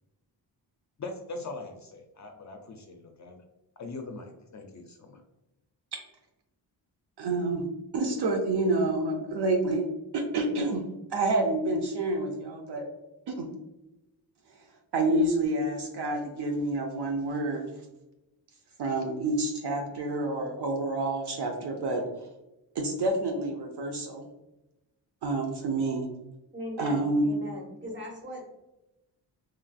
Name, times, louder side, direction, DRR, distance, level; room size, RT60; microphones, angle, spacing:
voice 1, 1.0-3.4 3.8-5.2, left 3 dB, 40° left, 3 dB, 0.4 m, -41 dB
voice 2, 7.2-7.7 7.9-9.9 10.1-10.8 11.1-12.8 13.3-13.5 14.9-17.7 18.8-22.0 22.8-24.2 25.2-26.1 26.8-27.3, right 2 dB, 60° right, 3 dB, 0.6 m, -28 dB
voice 3, 26.5-28.5, left 1 dB, 25° right, -1 dB, 1.3 m, -39 dB
3.2 x 2.4 x 2.3 m, 0.96 s
cardioid pair, 60°, 45 cm